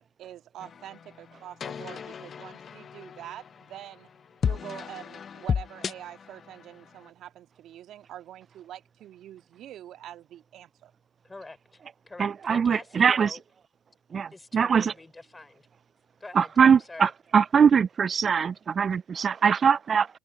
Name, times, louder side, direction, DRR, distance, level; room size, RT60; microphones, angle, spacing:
voice 1, 0.0-4.1 4.4-10.9, right 12 dB, 55° right, 1.8 m, -45 dB
sound 1, 0.6-7.1, left 7 dB, 40° left, 0.9 m, -35 dB
voice 2, 11.2-13.4 14.3-15.7 16.2-17.1, left 2 dB, 15° left, 4.5 m, -45 dB
voice 3, 12.2-13.4 14.1-14.9 16.4-20.1, right 6 dB, 35° right, 0.3 m, -22 dB
hypercardioid pair, 75°, 0 cm